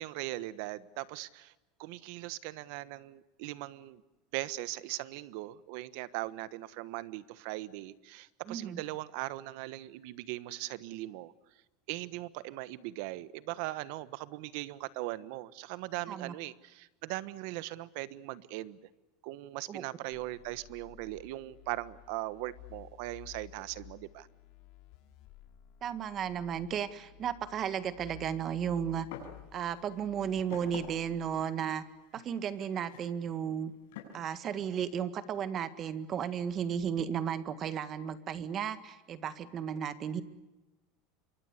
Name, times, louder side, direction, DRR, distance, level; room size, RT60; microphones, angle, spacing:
voice 1, 0.0-1.5 1.8-4.0 4.3-11.3 11.9-18.8 19.2-24.3, right 17 dB, 65° right, 16 dB, 1.3 m, -39 dB
voice 2, 8.5-8.8 16.1-16.3 19.7-19.8 25.8-29.1 29.5-31.8 32.1-33.7 34.1-40.2, right 8 dB, 30° right, 12 dB, 1.7 m, -34 dB
sound 1, 20.1-31.5, left 14 dB, 55° left, 3.4 m, -55 dB
sound 2, 29.1-29.4 29.7-34.2, left 8 dB, 80° left, 7.1 m, -48 dB
27.0 x 24.0 x 8.2 m, 1.1 s
supercardioid pair, 150°, 0 cm